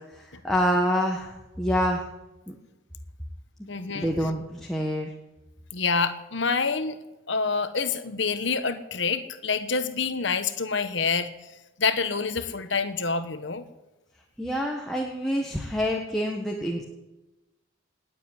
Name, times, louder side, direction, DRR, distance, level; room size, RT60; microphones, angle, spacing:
voice 1, 0.1-2.1 2.5-2.6 3.6-3.7 3.9-5.1 14.4-16.8, equal, ahead, -1 dB, 1.4 m, -27 dB
voice 2, 3.7-4.1 5.7-7.0 7.3-11.3 11.8-13.6, left 4 dB, 65° left, 10 dB, 1.2 m, -27 dB
19.0 x 7.7 x 9.7 m, 1.0 s
head